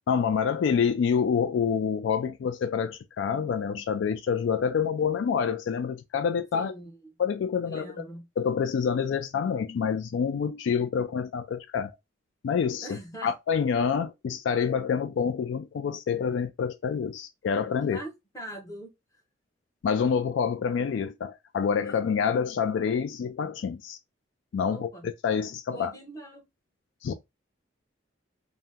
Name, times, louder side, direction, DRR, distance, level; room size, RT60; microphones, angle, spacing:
voice 1, 0.1-6.7 7.2-7.9 8.4-11.9 12.4-18.0 19.8-24.0 24.5-24.9 25.2-25.9 27.0-27.1, left 6 dB, 70° left, 0.3 m, -27 dB
voice 2, 6.5-7.1 7.6-8.2 12.8-13.3 17.8-18.9 24.7-25.1 25.7-26.4, right 1 dB, 15° left, 0.9 m, -42 dB
2.8 x 2.1 x 3.4 m
head